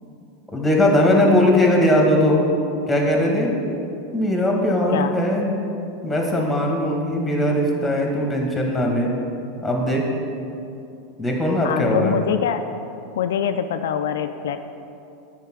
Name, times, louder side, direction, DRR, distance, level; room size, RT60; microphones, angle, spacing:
voice 1, 0.5-2.4 2.9-3.5 4.1-5.5 6.0-9.1 9.6-10.0 11.2-12.2, left 1 dB, 10° left, 0 dB, 1.9 m, -19 dB
voice 2, 11.6-12.6 13.2-14.6, left 8 dB, 75° left, 8 dB, 0.3 m, -24 dB
9.3 x 4.7 x 6.2 m, 2.7 s
hypercardioid pair, 95°, 0 cm